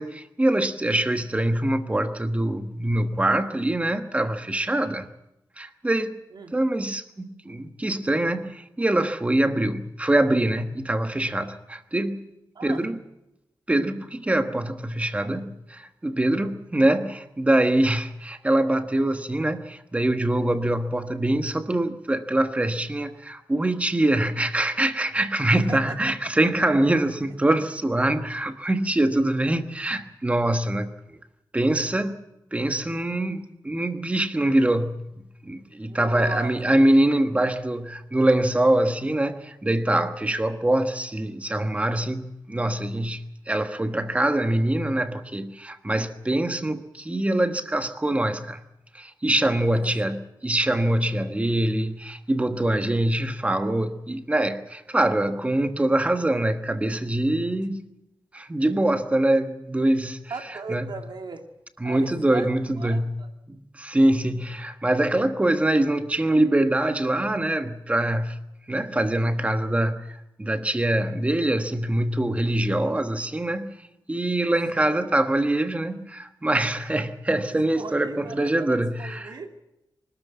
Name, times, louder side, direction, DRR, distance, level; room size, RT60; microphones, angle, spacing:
voice 1, 0.0-5.1 5.6-6.1 6.5-12.3 12.6-13.0 13.7-31.2 31.5-32.2 32.5-35.1 35.4-48.6 48.9-57.9 58.3-60.2 60.7-60.9 61.8-63.2 63.5-68.4 68.7-73.7 74.1-79.4, right 1 dB, 15° right, 1.3 m, -24 dB
voice 2, 35.9-36.6 49.7-50.1 50.5-50.6 60.3-61.4 61.8-63.3 74.8-75.0 77.5-79.5, right 4 dB, 70° right, 2.5 m, -38 dB
24.5 x 13.0 x 9.4 m
wide cardioid pair, 165°, 8 cm